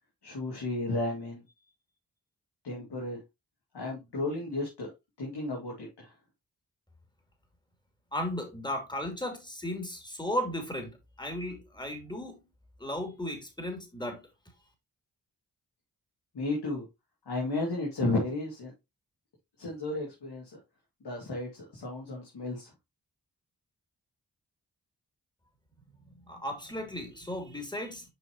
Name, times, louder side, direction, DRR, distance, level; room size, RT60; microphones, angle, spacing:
voice 1, 0.2-1.4 2.6-3.2 3.7-4.9 5.2-6.1 16.3-16.8 17.3-18.7 19.6-20.5 21.0-22.7, left 2 dB, 75° left, 2.6 m, -33 dB
voice 2, 8.1-12.4 12.8-14.2 25.9-28.1, left 1 dB, 10° left, 3.3 m, -35 dB
7.5 x 5.3 x 3.0 m
cardioid pair, 40°, 40 cm